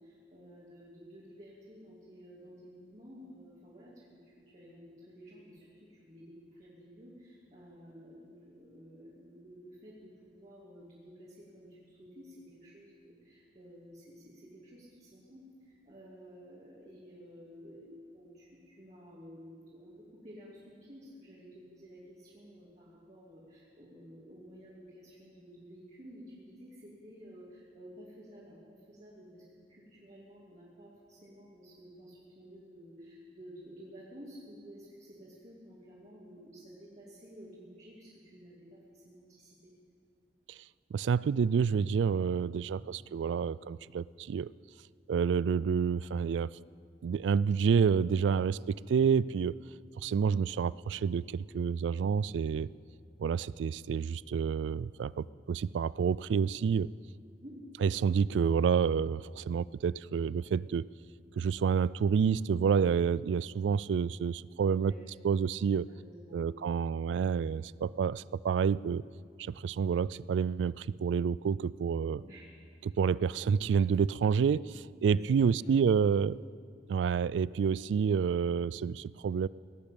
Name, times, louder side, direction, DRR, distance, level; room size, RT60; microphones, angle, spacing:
voice 1, 0.0-39.7 57.3-57.6 64.7-65.0 65.9-66.8 72.1-72.5 75.1-76.1, equal, 40° right, -7 dB, 2.7 m, -52 dB
voice 2, 40.9-44.5 45.1-46.5 47.0-49.5 50.0-52.7 53.2-56.9 57.8-60.9 61.4-64.9 65.2-65.9 66.3-69.0 69.4-72.2 72.8-76.4 76.9-79.5, right 6 dB, 90° right, 21 dB, 0.3 m, -29 dB
18.0 x 8.7 x 8.5 m, 2.2 s
head